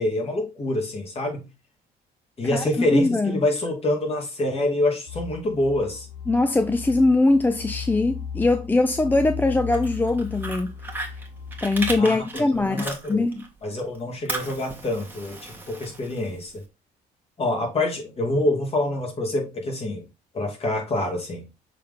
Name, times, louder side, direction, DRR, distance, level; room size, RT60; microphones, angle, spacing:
voice 1, 0.0-1.4 2.4-6.1 12.0-13.3 13.6-16.6 17.4-20.0 20.3-21.4, left 1 dB, 35° left, 2.5 m, -26 dB
voice 2, 2.9-3.4 6.3-10.7 11.6-13.5, left 2 dB, 10° left, 0.5 m, -21 dB
sound 1, 5.1-12.0, left 7 dB, 80° left, 1.2 m, -36 dB
Fire, 9.5-13.5 13.8-16.6, right 2 dB, 10° right, 1.5 m, -35 dB
6.5 x 3.8 x 3.8 m
cardioid pair, 110°, 17 cm